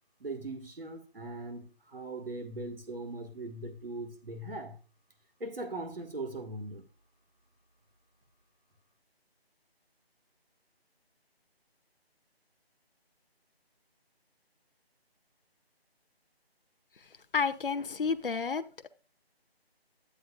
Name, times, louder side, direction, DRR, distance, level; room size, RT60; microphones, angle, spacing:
voice 1, 0.2-4.7 5.4-6.8, right 2 dB, 65° right, 1.9 m, -40 dB
voice 2, 17.3-18.9, left 5 dB, 60° left, 0.7 m, -31 dB
11.0 x 8.5 x 2.5 m
figure-of-eight pair, 165°, 31 cm